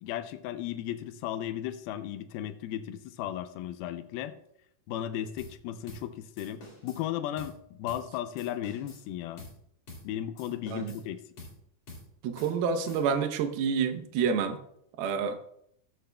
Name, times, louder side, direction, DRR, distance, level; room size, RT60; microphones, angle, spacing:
voice 1, 0.0-4.4 4.9-9.5 10.0-11.2, left 11 dB, 90° left, 10 dB, 2.5 m, -35 dB
sound 1, 5.4-5.6 5.9-6.1 6.4-7.0 7.4-7.6 7.9-8.1 8.4-9.0 9.4-9.6 9.9-10.1 10.4-11.1 11.4-11.6 11.9-12.1 12.4-13.3, left 2 dB, 55° left, 4.2 m, -48 dB
voice 2, 12.2-14.6 15.0-15.4, right 6 dB, 85° right, 7 dB, 2.7 m, -28 dB
13.0 x 7.8 x 2.2 m, 0.71 s
omnidirectional pair, 4.3 m